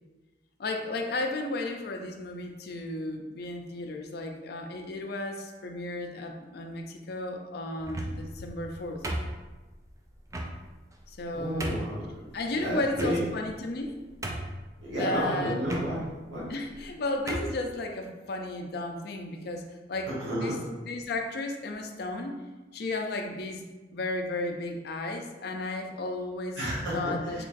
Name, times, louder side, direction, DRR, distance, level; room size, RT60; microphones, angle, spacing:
voice 1, 0.6-9.0 11.1-11.9 12.3-14.0 14.9-15.6 16.5-22.3 22.7-23.6 23.9-26.6 26.9-27.4, left 2 dB, 55° left, 4 dB, 0.4 m, -34 dB
sound 1, 7.8-8.3 9.0-9.7 10.3-10.5 11.1-11.2 11.6-11.9 12.9-13.5 13.8-13.9 14.2-14.7 15.6-15.9 16.7-16.9 17.3-17.6, right 1 dB, 15° right, 0.3 m, -34 dB
voice 2, 11.3-12.3 12.5-13.2 14.8-16.0 16.3-16.5 20.2-20.6 26.6-27.4, equal, 80° right, -9 dB, 1.1 m, -31 dB
3.8 x 3.0 x 2.5 m, 1.2 s
head